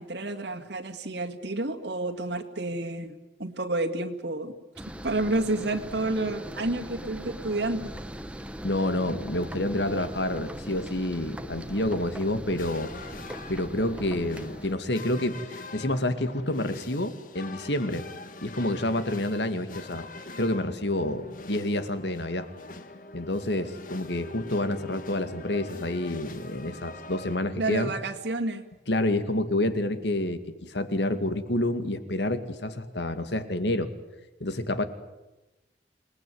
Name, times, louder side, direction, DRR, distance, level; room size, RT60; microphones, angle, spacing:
voice 1, 0.0-4.5 5.0-7.9 27.6-28.6, right 2 dB, 75° right, 4 dB, 2.2 m, -30 dB
sound 1, 4.8-14.7, equal, 5° right, 1.1 m, -40 dB
voice 2, 8.6-12.9 13.5-18.0 18.4-20.1 20.4-22.5 23.1-27.9 28.9-33.9 34.4-34.8, left 1 dB, 75° left, 10 dB, 2.3 m, -28 dB
sound 2, 12.6-27.4, left 3 dB, 50° left, 1.8 m, -43 dB
28.0 x 20.0 x 9.5 m, 1.0 s
head